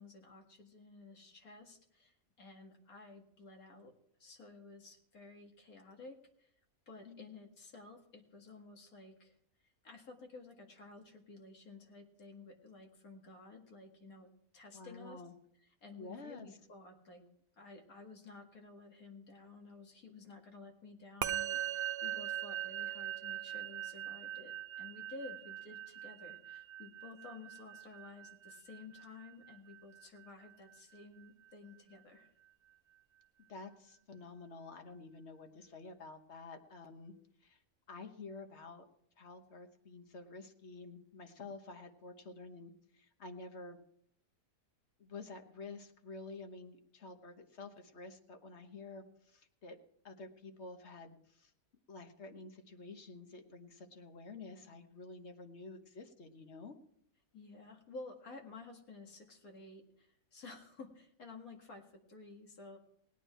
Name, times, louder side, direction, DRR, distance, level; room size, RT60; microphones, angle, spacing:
voice 1, 0.0-3.9 4.2-6.5 6.9-9.4 9.8-14.3 14.5-15.2 15.8-17.2 17.6-32.3 57.3-62.8, left 3 dB, 80° left, 2 dB, 2.3 m, -53 dB
voice 2, 14.7-15.3 16.0-16.5 33.5-37.1 37.4-37.6 37.9-38.8 39.2-43.8 45.0-49.8 50.0-51.5 51.9-56.8, left 3 dB, 50° left, 7 dB, 1.4 m, -50 dB
Musical instrument, 21.2-30.7, right 11 dB, 55° right, 0.7 m, -41 dB
19.5 x 9.2 x 4.5 m, 0.71 s
omnidirectional pair, 1.5 m